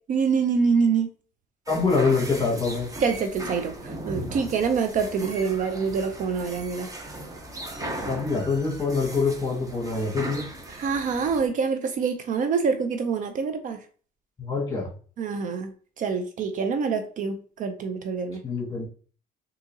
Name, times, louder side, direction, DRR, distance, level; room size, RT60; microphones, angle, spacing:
voice 1, 0.1-1.1 3.0-6.9 10.7-13.8 15.2-15.7 16.0-18.4, right 5 dB, 50° right, 0.5 m, -26 dB
voice 2, 1.7-2.9 8.0-10.5 14.4-14.9 18.4-18.9, left 4 dB, 20° left, 1.5 m, -25 dB
sound 1, 1.7-11.5, right 1 dB, 20° right, 0.8 m, -38 dB
3.7 x 2.7 x 2.7 m
cardioid pair, 110°, 17 cm